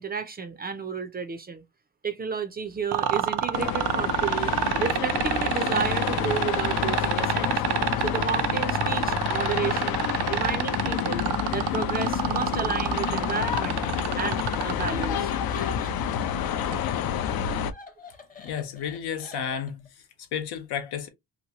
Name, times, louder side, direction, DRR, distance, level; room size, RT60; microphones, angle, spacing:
voice 1, 0.0-1.6 2.0-4.5 4.8-7.6 8.0-10.0 10.3-11.2 11.5-13.8 14.1-15.3, right 5 dB, 25° right, 0.4 m, -32 dB
sound 1, 2.9-15.1 16.7-16.8, right 12 dB, 90° right, 0.6 m, -26 dB
sound 2, 3.5-17.7, left 9 dB, 65° left, 0.5 m, -28 dB
Laughter, 15.0-16.3 16.7-19.9, left 4 dB, 20° left, 0.7 m, -46 dB
voice 2, 18.4-19.8 20.3-21.1, left 8 dB, 90° left, 1.0 m, -32 dB
2.9 x 2.6 x 2.8 m
cardioid pair, 155°, 39 cm